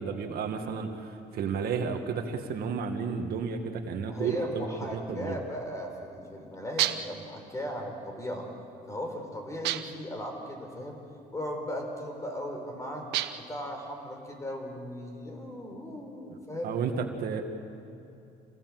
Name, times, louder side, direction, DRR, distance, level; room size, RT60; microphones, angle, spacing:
voice 1, 0.0-4.7 4.9-5.4 16.6-17.4, right 6 dB, 65° right, 5 dB, 1.9 m, -32 dB
voice 2, 4.1-8.5 8.9-11.0 11.3-13.1 13.4-16.8, equal, 20° left, 3 dB, 4.5 m, -37 dB
sound 1, 6.8-7.2 9.6-10.1 13.1-13.6, right 13 dB, 80° right, 0.9 m, -30 dB
27.0 x 17.0 x 7.7 m, 2.7 s
cardioid pair, 110°, 17 cm